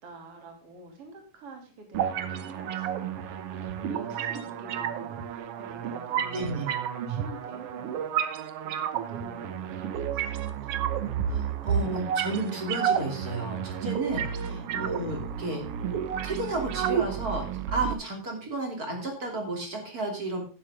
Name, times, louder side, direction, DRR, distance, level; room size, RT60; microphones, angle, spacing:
voice 1, 0.0-3.2 3.7-6.7 7.1-8.3 8.6-11.4 14.2-14.9, right 2 dB, 50° right, 2 dB, 3.5 m, -48 dB
sound 1, 1.9-17.9, right 8 dB, 65° right, 1.6 m, -31 dB
voice 2, 6.3-6.7 11.3-15.6 16.2-17.4 17.7-20.4, right 2 dB, 30° right, 2 dB, 3.1 m, -32 dB
11.5 x 9.9 x 3.6 m, 0.37 s
omnidirectional pair, 3.5 m